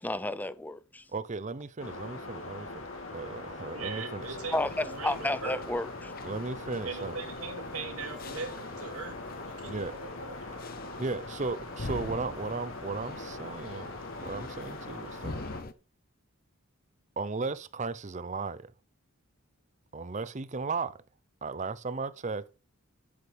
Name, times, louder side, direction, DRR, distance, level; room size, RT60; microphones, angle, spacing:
voice 1, 0.0-1.0 4.5-6.1, left 1 dB, 10° left, 0.6 m, -32 dB
voice 2, 1.1-4.4 6.2-7.2 9.7-10.0 11.0-13.9 14.2-15.4 17.2-18.7 19.9-21.0 21.4-22.5, right 4 dB, 35° right, 0.6 m, -36 dB
sound 1, 1.8-15.6, left 2 dB, 65° left, 3.1 m, -42 dB
voice 3, 3.7-5.6 6.8-10.3, right 4 dB, 90° right, 2.7 m, -40 dB
sound 2, 4.2-15.7, left 2 dB, 45° left, 0.8 m, -44 dB
11.0 x 8.5 x 3.4 m
head